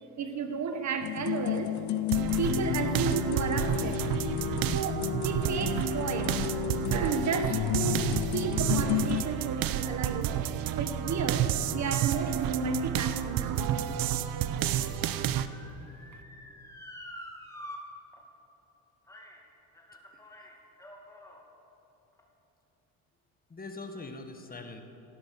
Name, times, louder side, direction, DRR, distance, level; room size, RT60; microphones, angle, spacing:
voice 1, 0.2-1.8 2.4-4.0 4.7-6.4 6.9-10.3 10.8-13.8, right 5 dB, 45° right, 7 dB, 1.4 m, -33 dB
sound 1, 1.0-9.2, left 15 dB, 50° left, 0.5 m, -32 dB
sound 2, 2.1-15.5, right 10 dB, 65° right, 0.8 m, -30 dB
Motor vehicle (road) / Siren, 13.4-17.8 18.1-18.2 19.1-19.4 19.7-21.4 22.1-22.2, left 1 dB, 10° left, 2.5 m, -48 dB
voice 2, 20.1-20.5 23.5-24.8, left 3 dB, 25° left, 6 dB, 1.4 m, -43 dB
15.5 x 11.5 x 7.0 m, 3.0 s
supercardioid pair, 90°, 38 cm